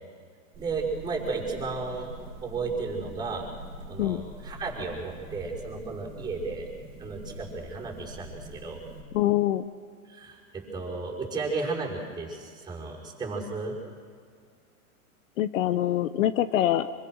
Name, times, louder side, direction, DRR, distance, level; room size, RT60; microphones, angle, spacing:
voice 1, 0.5-2.1 2.4-3.5 3.9-6.7 7.0-8.8 10.1-13.8, right 4 dB, 10° right, -2 dB, 5.8 m, -34 dB
sound 1, 0.5-9.0, right 1 dB, 25° right, 4.4 m, -44 dB
voice 2, 9.1-9.6 15.4-16.9, left 13 dB, 60° left, 13 dB, 1.0 m, -24 dB
26.5 x 23.5 x 6.5 m, 2.1 s
hypercardioid pair, 145°, 44 cm